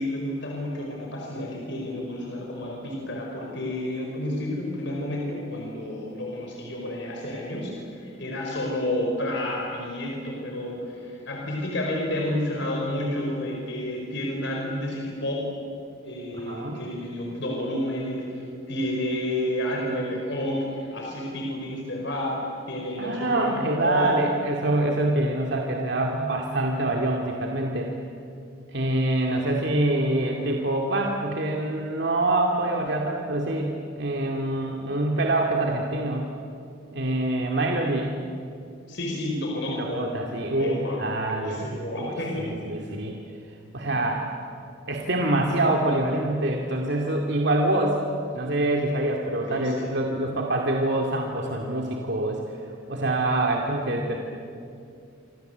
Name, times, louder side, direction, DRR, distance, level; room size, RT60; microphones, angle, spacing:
voice 1, 0.0-15.5 16.0-22.4 22.7-24.2 38.9-40.2 40.4-42.5 49.4-49.9, left 1 dB, 60° left, -1 dB, 4.9 m, -30 dB
voice 2, 16.3-16.8 23.0-27.9 28.7-36.3 36.9-38.1 39.7-41.6 42.0-43.1 43.7-44.3 44.9-48.0 48.3-52.4 52.9-54.2, right 1 dB, 55° right, 0 dB, 2.4 m, -25 dB
28.0 x 26.5 x 8.1 m, 2.5 s
head